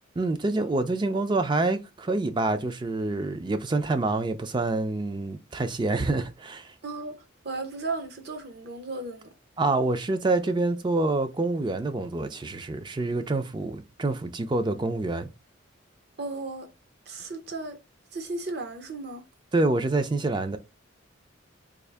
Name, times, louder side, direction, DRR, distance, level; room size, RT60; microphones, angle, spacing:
voice 1, 0.2-6.7 9.6-15.3 19.5-20.6, right 2 dB, 25° right, 0.4 m, -27 dB
voice 2, 6.8-9.3 16.2-16.7 17.1-17.8 18.1-19.2, right 3 dB, 50° right, 0.7 m, -35 dB
3.6 x 2.4 x 3.3 m
head